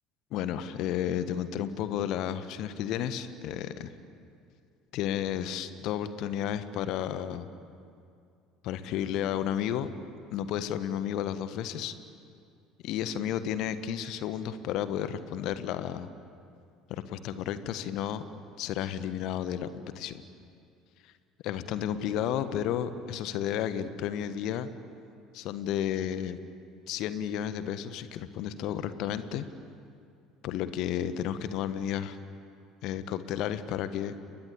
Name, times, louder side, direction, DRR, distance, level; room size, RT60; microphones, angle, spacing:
voice 1, 0.3-3.9 4.9-7.5 8.6-9.9 10.3-11.9 12.8-16.1 16.9-18.2 18.6-20.1 21.4-24.7 25.3-26.4 26.9-29.4 30.4-32.2 32.8-34.1, left 10 dB, 50° left, 12 dB, 1.4 m, -32 dB
30.0 x 21.0 x 8.7 m, 2.4 s
figure-of-eight pair, 60°, 0 cm